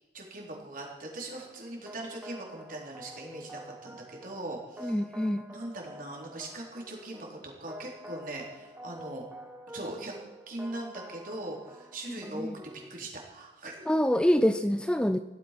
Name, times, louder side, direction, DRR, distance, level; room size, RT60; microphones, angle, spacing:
voice 1, 0.1-5.0 5.5-9.3 9.7-10.1 10.5-13.7, right 1 dB, 50° right, -1 dB, 4.1 m, -40 dB
sound 1, 1.3-12.9, equal, 10° right, 1.5 m, -48 dB
voice 2, 4.8-5.4 12.1-12.5 13.9-15.2, equal, 5° left, 10 dB, 0.4 m, -26 dB
16.5 x 12.5 x 6.0 m, 1.1 s
head